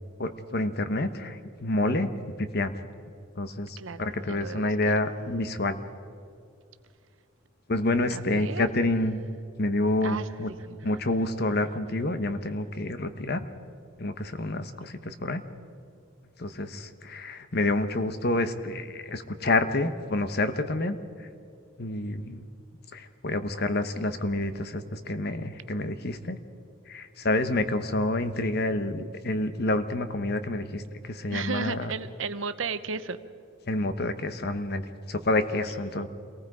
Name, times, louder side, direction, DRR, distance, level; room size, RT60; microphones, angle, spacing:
voice 1, 0.2-2.1 2.4-2.7 3.4-5.8 7.7-9.2 9.6-10.5 10.8-13.5 14.0-15.4 16.4-21.0 21.8-22.5 22.9-26.4 26.9-31.9 33.7-36.1, left 2 dB, 50° left, 10 dB, 1.1 m, -28 dB
voice 2, 3.8-4.9 8.1-8.7 10.0-10.9 31.3-33.2, right 4 dB, 70° right, 12 dB, 0.9 m, -34 dB
27.5 x 19.0 x 5.0 m, 2.4 s
head